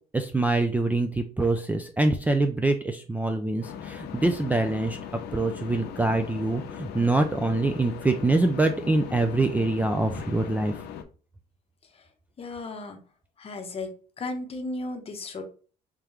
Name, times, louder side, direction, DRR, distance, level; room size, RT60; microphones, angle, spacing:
voice 1, 0.1-5.0 5.3-10.7, right 2 dB, 10° right, 6 dB, 0.3 m, -25 dB
sound 1, 3.6-11.0, left 8 dB, 75° left, 0.6 m, -39 dB
voice 2, 12.4-13.0 13.4-15.4, left 2 dB, 35° left, 6 dB, 0.9 m, -35 dB
3.6 x 3.3 x 2.9 m, 0.38 s
cardioid pair, 110°, 17 cm